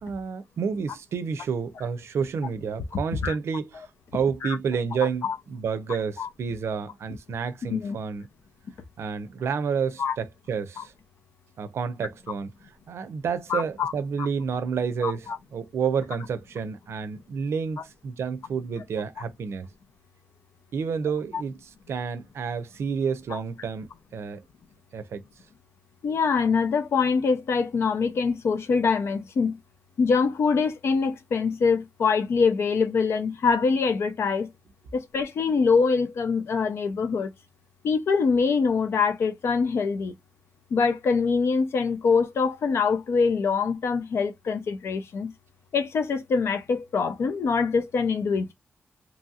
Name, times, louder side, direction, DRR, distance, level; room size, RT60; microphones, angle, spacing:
voice 1, 0.0-8.3 9.0-10.9 11.6-12.5 12.9-19.7 20.7-21.6 21.9-24.4 24.9-25.2, right 6 dB, 85° right, 0.5 m, -30 dB
voice 2, 13.5-13.9 14.2-14.3 15.0-15.4 21.3-21.4 23.3-23.4 26.0-29.6 30.0-34.5 34.9-37.3 37.8-40.1 40.7-45.3 45.7-48.5, left 5 dB, 75° left, 0.5 m, -24 dB
3.0 x 2.7 x 2.3 m
wide cardioid pair, 175°, 4 cm